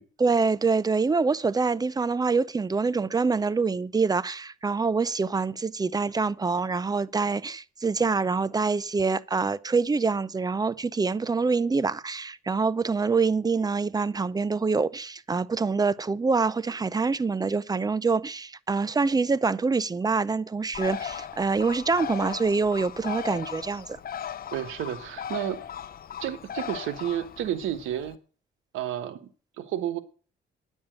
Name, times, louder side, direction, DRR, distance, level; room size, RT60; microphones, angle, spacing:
voice 1, 0.2-24.0, right 4 dB, 20° right, 0.6 m, -25 dB
Bird, 20.7-28.1, left 9 dB, 50° left, 0.8 m, -38 dB
voice 2, 24.5-25.6 26.2-28.2 28.7-29.2 29.6-30.0, right 11 dB, 90° right, 1.2 m, -31 dB
10.0 x 7.2 x 8.8 m
cardioid pair, 90°, 20 cm